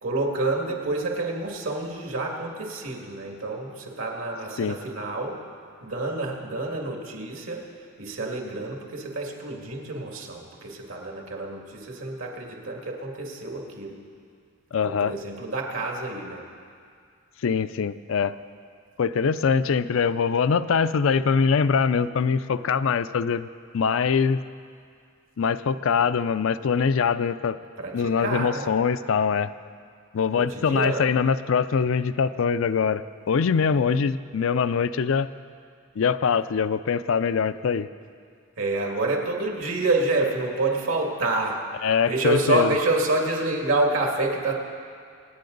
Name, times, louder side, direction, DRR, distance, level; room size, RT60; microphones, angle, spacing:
voice 1, 0.0-5.4 5.8-7.6 8.0-14.0 14.8-16.4 27.8-28.7 30.3-31.1 38.6-44.5, right 2 dB, 80° right, 0 dB, 2.2 m, -28 dB
voice 2, 14.7-15.1 17.4-18.4 19.0-23.5 23.7-24.4 25.4-27.6 27.9-29.5 30.1-35.3 36.0-37.9 41.8-42.7, left 6 dB, 75° left, 13 dB, 0.4 m, -23 dB
26.0 x 9.3 x 3.9 m, 2.2 s
head